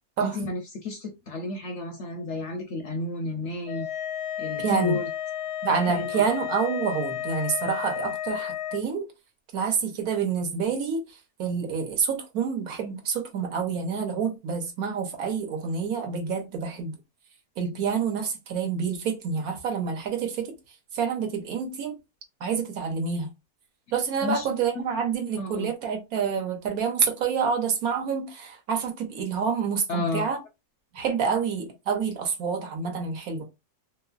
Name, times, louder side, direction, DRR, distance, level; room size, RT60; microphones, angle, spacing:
voice 1, 0.2-3.9 4.4-5.1 5.9-6.2 24.2-24.5 24.7-24.8 25.4-25.7 29.9-30.3, left 2 dB, 65° left, 0.7 m, -32 dB
sound 1, 3.7-8.8, left 11 dB, 80° left, 1.1 m, -32 dB
voice 2, 4.6-5.0 5.6-9.1 9.5-11.0 11.4-16.9 17.6-20.5 20.9-22.0 22.4-23.3 23.9-30.4 30.9-33.4, right 6 dB, 70° right, 1.3 m, -27 dB
3.0 x 2.9 x 2.4 m
omnidirectional pair, 1.6 m